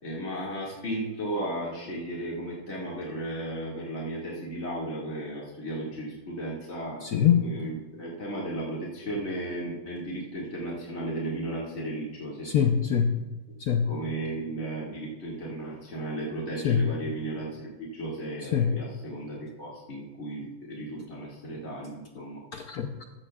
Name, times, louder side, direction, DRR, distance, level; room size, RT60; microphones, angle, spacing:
voice 1, 0.0-12.5 13.8-22.4, right 1 dB, 35° left, -6 dB, 2.3 m, -35 dB
voice 2, 7.0-7.4 12.4-13.1 13.7-13.9 16.6-16.8 18.5-18.7 22.5-23.0, left 8 dB, 65° left, 5 dB, 0.9 m, -23 dB
15.0 x 13.5 x 2.4 m, 1.2 s
omnidirectional pair, 2.1 m